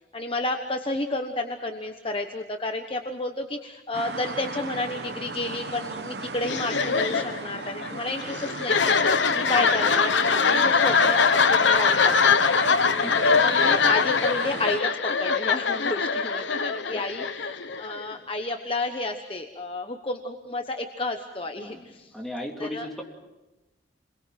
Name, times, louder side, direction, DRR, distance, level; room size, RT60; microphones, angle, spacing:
voice 1, 0.1-9.0 9.3-12.4 13.2-22.1 22.6-22.9, left 2 dB, 30° left, 4 dB, 1.1 m, -31 dB
sound 1, 3.9-14.8, right 3 dB, 60° right, 1.1 m, -36 dB
sound 2, 6.4-18.1, left 5 dB, 75° left, 1.0 m, -22 dB
voice 2, 9.6-10.4 12.8-13.3 16.9-17.3 21.6-21.8 22.1-23.0, left 1 dB, ahead, -1 dB, 3.1 m, -37 dB
29.5 x 22.5 x 6.0 m, 1.0 s
head